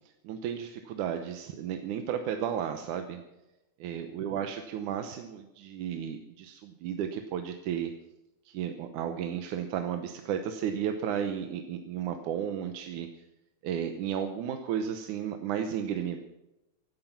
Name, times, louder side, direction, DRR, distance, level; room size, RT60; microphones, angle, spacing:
voice 1, 0.2-3.2 3.8-7.9 8.5-13.1 13.6-16.2, right 9 dB, 75° right, 6 dB, 2.4 m, -33 dB
16.0 x 13.0 x 5.9 m, 0.95 s
omnidirectional pair, 3.6 m